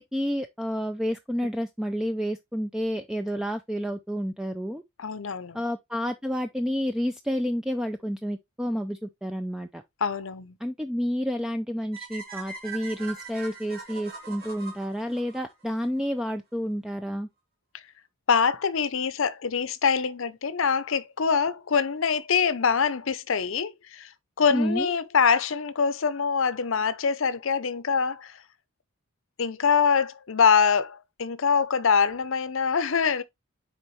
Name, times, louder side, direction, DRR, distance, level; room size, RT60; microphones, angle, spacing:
voice 1, 0.0-4.8 5.5-9.8 10.6-17.3 24.5-24.9, equal, 5° right, 0.4 m, -30 dB
voice 2, 5.0-5.6 10.0-10.5 18.3-24.1 24.4-28.3 29.4-33.2, left 6 dB, 65° left, 0.6 m, -24 dB
sound 1, 11.9-16.1, right 4 dB, 45° right, 2.5 m, -41 dB
6.9 x 4.5 x 3.1 m
head